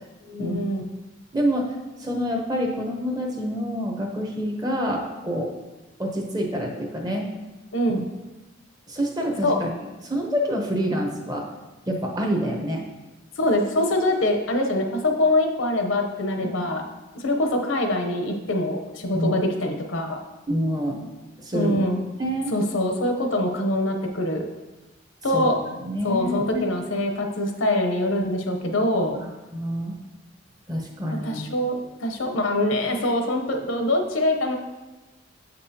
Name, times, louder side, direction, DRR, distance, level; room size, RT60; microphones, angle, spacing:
voice 1, 0.3-0.8 7.7-8.0 9.4-9.6 13.4-16.8 17.1-20.2 21.5-22.0 22.5-24.5 25.2-25.5 26.0-29.2 31.2-34.6, left 1 dB, 80° left, 4 dB, 0.8 m, -24 dB
voice 2, 1.3-5.5 6.0-7.3 8.9-9.7 10.0-11.4 11.9-12.8 16.4-16.6 19.1-19.3 20.5-21.0 21.4-21.8 22.2-22.5 25.3-25.5 25.8-26.6 29.1-29.3 29.5-29.9 30.7-31.4, equal, 20° right, 1 dB, 0.8 m, -27 dB
7.2 x 5.3 x 2.8 m, 1.1 s
head